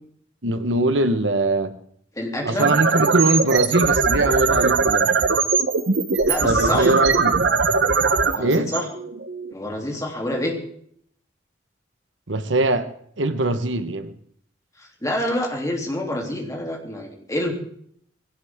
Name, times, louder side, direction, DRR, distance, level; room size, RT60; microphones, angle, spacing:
voice 1, 0.4-1.8 2.4-5.1 6.4-7.4 8.4-8.7 12.3-12.9 13.2-14.1, right 2 dB, 85° right, 10 dB, 1.3 m, -21 dB
voice 2, 2.1-2.7 6.3-6.9 8.2-8.8 9.5-10.5 14.8-17.5, left 1 dB, 15° left, 0 dB, 3.1 m, -27 dB
sound 1, 2.4-9.5, right 4 dB, 70° right, 1.1 m, -20 dB
20.0 x 17.0 x 3.7 m, 0.64 s
head